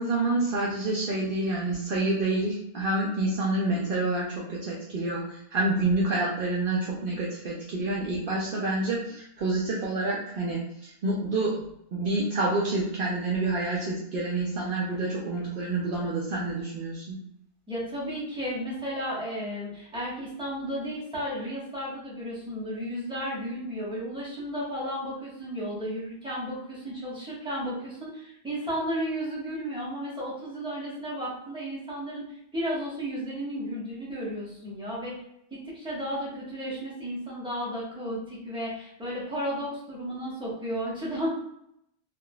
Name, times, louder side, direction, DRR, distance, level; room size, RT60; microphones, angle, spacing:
voice 1, 0.0-17.2, right 2 dB, 60° right, -4 dB, 0.7 m, -28 dB
voice 2, 17.7-35.1 35.5-41.3, equal, 5° right, -8 dB, 1.1 m, -33 dB
3.6 x 2.4 x 2.2 m, 0.74 s
omnidirectional pair, 1.1 m